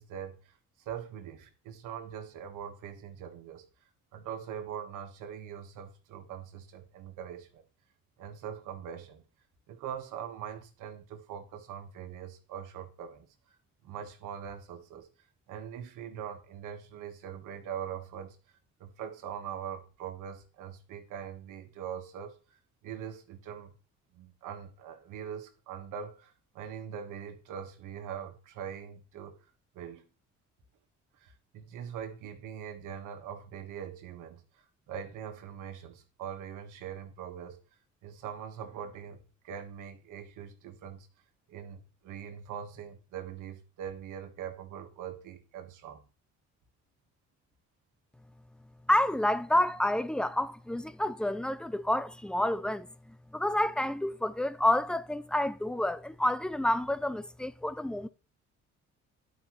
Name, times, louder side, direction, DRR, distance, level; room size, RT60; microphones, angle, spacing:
voice 1, 0.0-3.7 4.1-7.6 8.2-9.2 9.7-13.3 13.8-15.1 15.5-18.4 18.8-22.3 22.8-23.7 24.1-29.4 29.7-30.0 31.2-34.4 34.9-37.6 38.0-41.1 41.5-46.0, right 8 dB, 90° right, 1.5 m, -42 dB
voice 2, 48.9-52.9 53.3-58.1, left 1 dB, 5° left, 0.5 m, -29 dB
11.5 x 5.3 x 3.1 m
cardioid pair, 90°, 30 cm